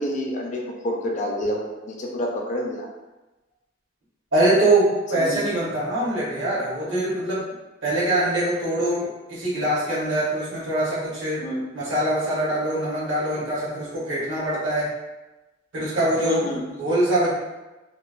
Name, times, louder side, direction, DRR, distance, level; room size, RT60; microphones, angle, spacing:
voice 1, 0.0-2.9 5.2-5.5 11.4-11.6 16.2-16.6, left 1 dB, 40° left, 0 dB, 0.4 m, -28 dB
voice 2, 4.3-7.4 7.8-11.4 11.7-14.9 15.7-16.5 16.8-17.3, right 1 dB, 75° right, -7 dB, 1.0 m, -23 dB
2.9 x 2.0 x 2.4 m, 1.1 s
head